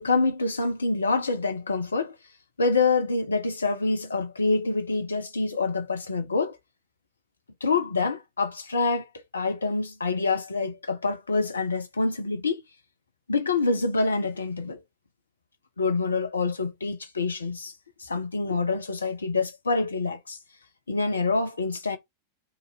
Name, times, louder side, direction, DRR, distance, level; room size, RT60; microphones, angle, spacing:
voice 1, 0.0-2.1 2.6-6.6 7.6-12.6 13.3-14.8 15.8-17.7 18.0-20.4 20.9-22.0, left 3 dB, 75° left, 0.6 m, -26 dB
2.9 x 2.6 x 4.1 m
figure-of-eight pair, 90°, 0 cm